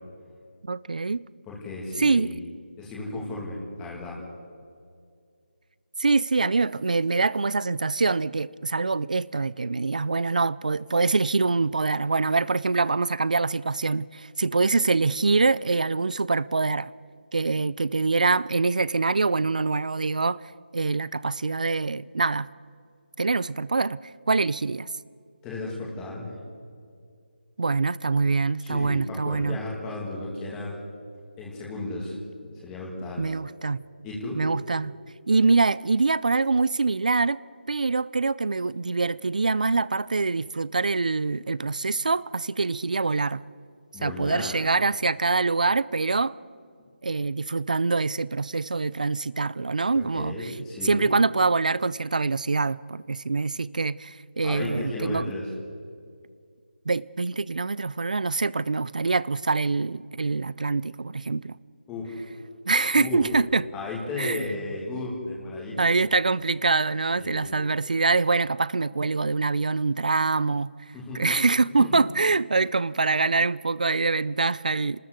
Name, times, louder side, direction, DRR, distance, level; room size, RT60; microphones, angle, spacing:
voice 1, 0.6-1.2 2.0-2.4 6.0-16.9 17.3-20.4 20.7-22.5 23.2-24.0 24.3-24.9 27.6-29.6 33.2-33.8 34.4-34.9 35.3-37.4 37.7-43.4 44.0-46.3 47.0-50.5 50.8-55.3 56.9-61.6 62.7-63.6 64.2-64.5 65.8-70.7 71.1-75.0, right 3 dB, 45° right, 0.5 m, -24 dB
voice 2, 1.5-2.3 2.8-4.2 25.4-26.3 28.6-30.8 31.4-33.2 34.0-34.4 43.9-44.5 50.1-51.1 54.4-55.5 61.9-62.2 62.9-63.2 63.7-66.0 67.2-67.6 70.9-71.3 71.8-71.9, left 2 dB, 5° left, 2.3 m, -34 dB
29.0 x 13.0 x 8.1 m
figure-of-eight pair, 175°, 6 cm